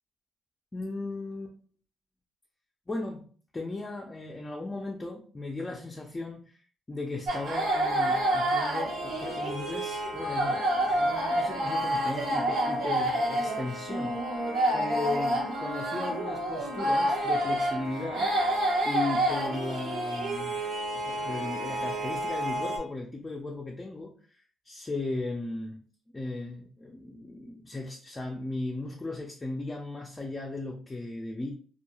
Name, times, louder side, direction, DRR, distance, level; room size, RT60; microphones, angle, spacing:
voice 1, 0.7-1.5 2.9-3.3 3.5-6.6 6.9-14.4 14.7-18.4 18.8-20.6 20.9-25.8 26.1-31.5, left 2 dB, 20° left, 0 dB, 0.4 m, -36 dB
sound 1, 7.3-22.8, right 1 dB, 85° right, 1.0 m, -28 dB
2.2 x 2.2 x 2.9 m, 0.44 s
cardioid pair, 90°, 0 cm